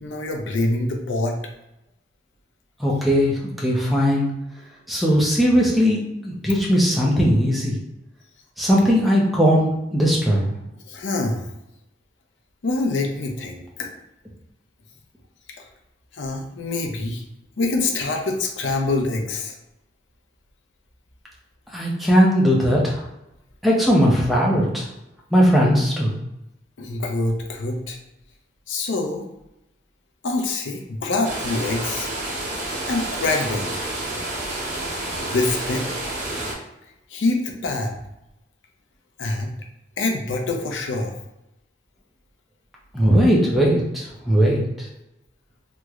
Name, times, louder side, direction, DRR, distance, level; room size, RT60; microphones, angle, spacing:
voice 1, 0.0-1.4 10.8-11.5 12.6-13.9 15.5-15.7 16.1-17.2 17.6-19.6 26.8-28.0 28.7-29.3 30.2-32.1 32.9-33.7 35.2-35.9 37.1-37.9 39.2-39.5 40.0-41.1, left 2 dB, 85° left, 2 dB, 0.5 m, -25 dB
voice 2, 2.8-4.3 4.9-7.7 8.6-10.5 21.7-23.0 23.6-24.9 25.3-26.1 42.9-44.6, equal, ahead, -4 dB, 0.5 m, -18 dB
sound 1, 31.2-36.5, right 1 dB, 45° right, 0.8 m, -29 dB
3.0 x 2.1 x 3.5 m, 0.89 s
head